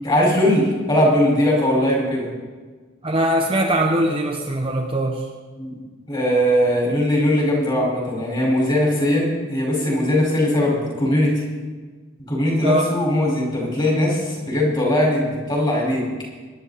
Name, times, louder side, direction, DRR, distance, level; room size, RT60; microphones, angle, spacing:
voice 1, 0.0-2.3 5.6-5.8 6.1-11.4 12.3-16.0, left 1 dB, 25° left, -3 dB, 5.1 m, -20 dB
voice 2, 3.0-5.3 12.6-12.9, right 1 dB, 25° right, 1 dB, 1.1 m, -21 dB
23.0 x 11.0 x 4.2 m, 1.4 s
head